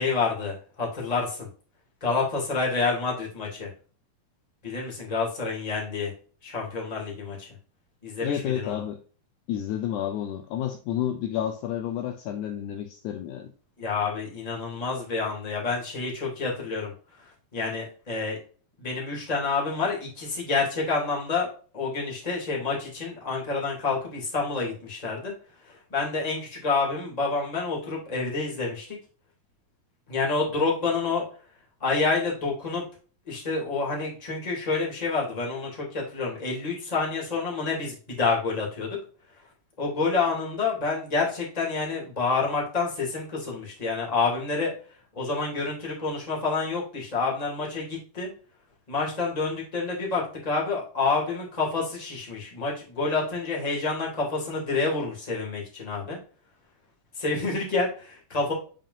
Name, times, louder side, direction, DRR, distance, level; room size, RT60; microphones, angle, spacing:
voice 1, 0.0-1.5 2.0-3.7 4.6-6.1 6.4-7.5 8.0-8.7 13.8-16.9 17.2-18.4 18.8-25.3 25.6-29.0 30.1-31.3 31.8-32.8 33.3-39.0 39.8-44.7 45.1-48.3 48.9-56.2 57.1-58.5, left 4 dB, 15° left, -3 dB, 2.1 m, -28 dB
voice 2, 8.2-9.0 9.5-13.5, left 10 dB, 75° left, 5 dB, 1.9 m, -30 dB
7.5 x 5.5 x 2.6 m, 0.40 s
omnidirectional pair, 3.8 m